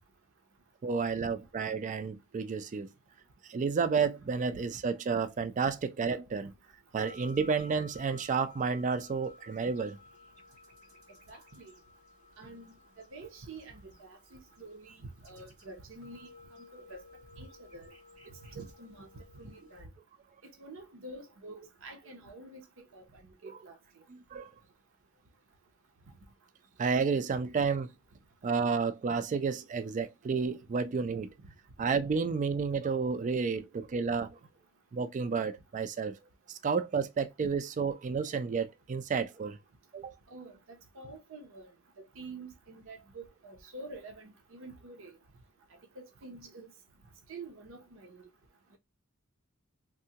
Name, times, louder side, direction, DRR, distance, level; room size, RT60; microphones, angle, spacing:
voice 1, 0.8-2.9 3.5-6.5 6.9-10.0 24.1-24.5 26.8-27.9 28.4-31.3 31.8-34.4 34.9-36.2 36.5-39.6 39.9-40.1, right 5 dB, 35° right, 0.3 m, -31 dB
sound 1, 7.0-19.8, left 3 dB, 85° right, 1.4 m, -56 dB
voice 2, 11.3-11.7 12.4-16.3 16.7-17.0 17.4-17.9 18.5-19.9 20.6-23.8 40.3-40.6 40.9-41.7 42.0-45.1 46.0-46.7 47.3-48.3, right 2 dB, 65° right, 0.7 m, -48 dB
3.6 x 2.1 x 2.8 m
head